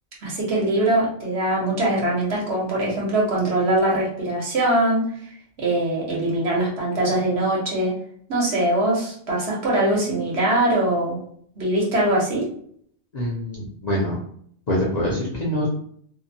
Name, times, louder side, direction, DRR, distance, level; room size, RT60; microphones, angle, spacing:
voice 1, 0.2-5.0 5.6-7.9 8.3-11.2 11.6-12.5, right 1 dB, 60° right, -4 dB, 1.1 m, -22 dB
voice 2, 13.1-14.2 14.7-15.7, equal, 45° left, -6 dB, 0.6 m, -24 dB
2.8 x 2.1 x 2.6 m, 0.63 s
omnidirectional pair, 1.2 m